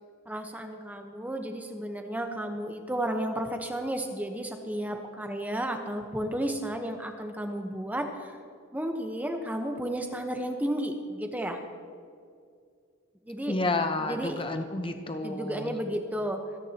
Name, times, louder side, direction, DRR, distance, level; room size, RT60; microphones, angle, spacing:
voice 1, 0.3-8.3 8.7-11.6 13.3-13.5 14.0-14.4 15.2-16.4, right 1 dB, 10° right, 4 dB, 1.0 m, -33 dB
voice 2, 13.5-15.8, left 2 dB, 25° left, 6 dB, 0.8 m, -30 dB
26.0 x 9.9 x 2.9 m, 2.2 s
head